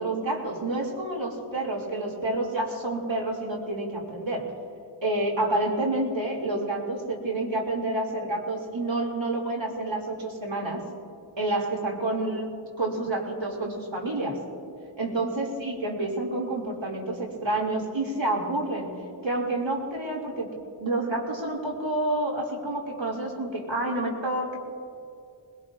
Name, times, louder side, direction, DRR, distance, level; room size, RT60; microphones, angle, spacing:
voice 1, 0.0-4.5 5.0-10.8 11.4-14.4 15.0-18.9 19.2-20.5 20.8-24.6, right 2 dB, 70° right, -2 dB, 3.3 m, -29 dB
22.5 x 20.5 x 2.8 m, 2.4 s
wide cardioid pair, 40°, 47 cm